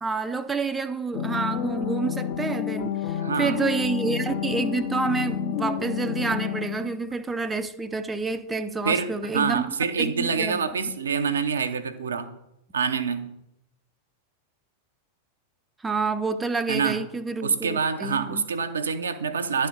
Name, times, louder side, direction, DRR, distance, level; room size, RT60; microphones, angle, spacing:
voice 1, 0.0-10.9 15.8-18.5, right 4 dB, 10° right, 0.5 m, -28 dB
sound 1, 1.1-7.0, left 10 dB, 45° left, 0.7 m, -30 dB
voice 2, 3.2-3.7 8.8-12.4 12.7-13.4 16.7-17.0 17.4-19.7, right 6 dB, 70° right, 0.6 m, -26 dB
10.5 x 4.2 x 5.0 m
figure-of-eight pair, 90°, 0 cm